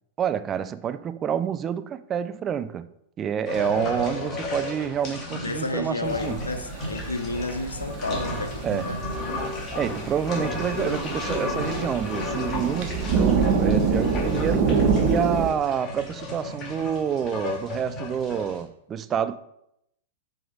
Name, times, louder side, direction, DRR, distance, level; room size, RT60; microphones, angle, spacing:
voice 1, 0.2-2.9 3.2-6.4 8.6-8.9 9.8-14.8 15.1-19.4, right 8 dB, 25° right, 0.4 m, -28 dB
sound 1, 3.5-18.6, left 2 dB, 35° left, 2.1 m, -34 dB
voice 2, 5.4-9.0, left 3 dB, 85° left, 0.8 m, -31 dB
sound 2, 6.0-15.5, right 5 dB, 45° right, 1.3 m, -26 dB
6.3 x 5.2 x 4.6 m
figure-of-eight pair, 100°, 0 cm